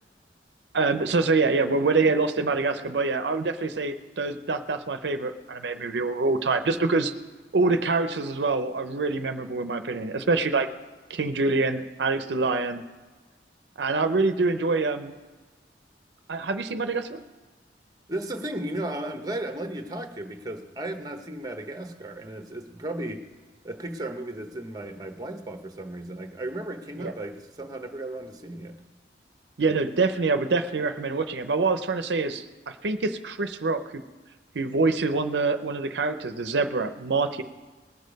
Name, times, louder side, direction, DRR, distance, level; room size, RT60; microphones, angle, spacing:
voice 1, 0.7-7.1 7.5-10.7 11.1-12.8 13.8-15.1 16.3-17.2 27.0-27.1 29.6-34.0 34.5-37.4, right 3 dB, 75° right, 8 dB, 0.6 m, -25 dB
voice 2, 18.1-23.2 23.6-28.8, right 1 dB, 20° right, 6 dB, 0.9 m, -35 dB
19.5 x 6.5 x 5.2 m, 1.4 s
head